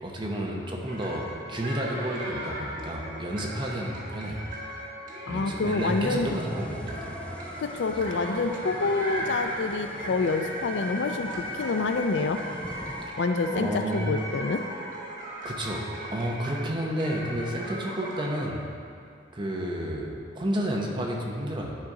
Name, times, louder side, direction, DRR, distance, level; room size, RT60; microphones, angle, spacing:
voice 1, 0.0-4.4 5.3-7.2 13.5-14.1 15.4-15.8 16.1-18.6 19.3-21.8, right 1 dB, 25° right, -1 dB, 0.9 m, -31 dB
sound 1, 0.9-18.5, equal, 45° right, 1.3 m, -37 dB
voice 2, 5.3-6.4 7.6-12.4 13.2-14.7, left 3 dB, 70° left, 7 dB, 0.4 m, -27 dB
sound 2, 5.8-13.1, equal, 5° left, 0.4 m, -43 dB
10.5 x 4.0 x 4.9 m, 2.4 s
head